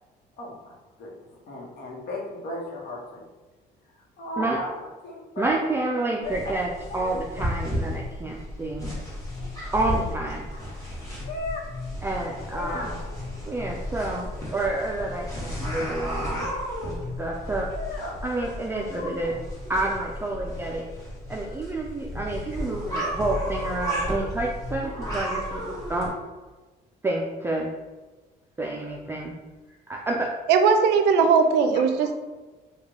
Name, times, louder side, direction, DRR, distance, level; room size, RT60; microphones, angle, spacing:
voice 1, 0.4-1.1 1.5-3.2 3.9-4.7 5.0-5.6 6.2-6.5 6.9-7.4 10.5-10.6 11.2-11.6 12.5-13.0 17.7-18.5 19.0-19.4 23.9-24.0 31.7-32.1, left 2 dB, 65° left, -1 dB, 1.0 m, -36 dB
voice 2, 5.4-6.7 6.9-8.9 9.7-10.4 12.0-13.0 13.5-16.5 16.8-17.7 18.2-19.3 19.7-20.9 21.3-26.1 27.0-27.7 28.6-29.3 29.9-30.3, right 2 dB, 15° right, -2 dB, 0.3 m, -29 dB
sound 1, 6.2-26.1, equal, 20° left, 1.3 m, -33 dB
voice 3, 30.5-32.1, right 5 dB, 85° right, 7 dB, 0.4 m, -19 dB
3.1 x 2.3 x 3.6 m, 1.2 s
cardioid pair, 110°, 17 cm